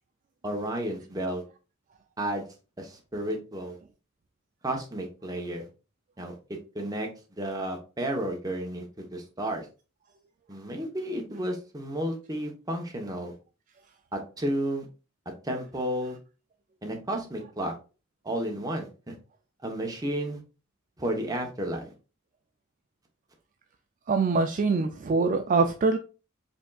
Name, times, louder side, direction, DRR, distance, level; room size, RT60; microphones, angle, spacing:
voice 1, 0.4-1.4 2.2-2.4 2.8-3.8 4.6-5.6 6.2-6.3 6.7-7.1 7.4-9.7 10.5-13.3 14.1-14.9 15.4-16.2 16.8-17.7 18.2-19.1 19.6-20.4 21.0-21.9, right 1 dB, 20° right, 0.9 m, -32 dB
voice 2, 24.1-26.0, right 4 dB, 40° right, 0.3 m, -24 dB
5.1 x 3.4 x 2.3 m
head